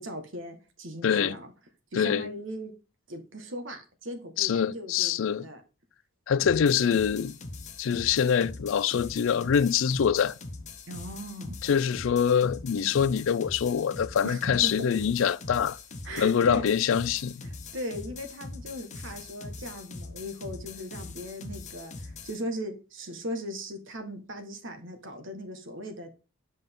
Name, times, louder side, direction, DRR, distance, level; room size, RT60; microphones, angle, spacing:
voice 1, 0.0-1.5 1.9-2.7 3.1-5.6 10.9-11.6 14.2-14.9 16.0-16.7 17.4-26.1, equal, 60° right, 1.5 m, -38 dB
voice 2, 1.0-1.4 1.9-2.3 4.4-5.5 6.3-7.3 7.8-10.3 11.6-15.8 16.2-17.4, left 7 dB, 65° left, 0.3 m, -25 dB
sound 1, 6.4-22.4, left 3 dB, 35° left, 0.9 m, -42 dB
7.9 x 5.3 x 3.6 m
head